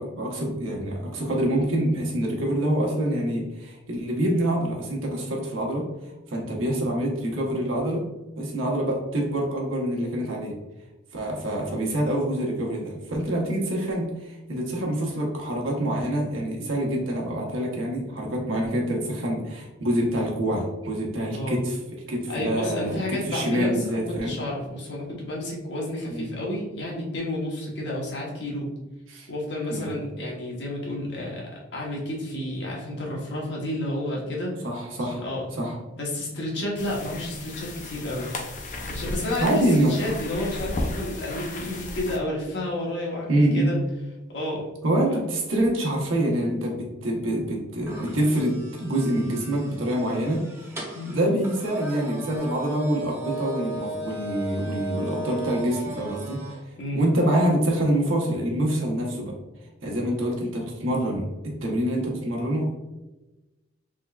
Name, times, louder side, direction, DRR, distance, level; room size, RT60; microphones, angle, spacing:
voice 1, 0.0-5.9 6.3-8.0 8.4-10.5 11.1-21.8 22.1-24.4 26.1-26.3 29.1-29.3 29.7-30.0 34.6-35.3 35.6-35.8 39.4-40.0 43.3-43.8 44.8-50.7 51.0-56.4 56.9-59.4 59.8-62.7, right 1 dB, 90° right, -2 dB, 0.9 m, -26 dB
voice 2, 22.1-28.7 29.3-34.6 35.0-35.4 36.0-38.3 38.8-43.8 44.3-44.7 50.9-51.3 56.8-57.0, left 1 dB, 60° left, -3 dB, 1.0 m, -31 dB
sound 1, 36.8-42.2, left 2 dB, 40° left, 0.4 m, -34 dB
sound 2, 47.9-56.6, right 2 dB, 15° right, 0.7 m, -37 dB
3.6 x 3.3 x 2.3 m, 1.1 s
head